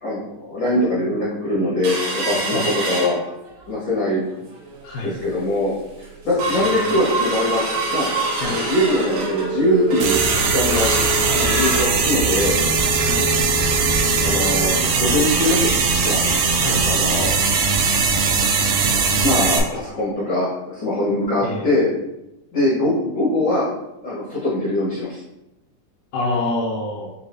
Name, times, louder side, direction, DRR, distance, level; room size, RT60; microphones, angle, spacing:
voice 1, 0.0-3.3 3.7-4.2 5.0-5.7 6.2-7.6 7.9-8.1 8.3-10.9 11.3-12.5 14.2-15.7 16.0-16.2 16.9-17.3 19.2-21.9 22.5-23.7 24.0-25.2, left 1 dB, 55° left, -8 dB, 1.2 m, -22 dB
sound 1, 1.8-3.7 4.1-4.2 4.5-4.9 5.4-5.5 5.8-16.3 16.7-16.8 17.1-17.3 17.8-17.9, right 2 dB, 65° right, 2.3 m, -26 dB
voice 2, 4.8-5.2 6.4-6.5 8.4-8.6 13.0-13.3 16.6-16.9 21.4-21.8 26.1-27.1, left 2 dB, 85° left, -4 dB, 2.3 m, -27 dB
sound 2, 10.0-19.6, right 5 dB, 80° right, 1.8 m, -20 dB
6.9 x 2.9 x 2.7 m, 0.90 s
omnidirectional pair, 4.0 m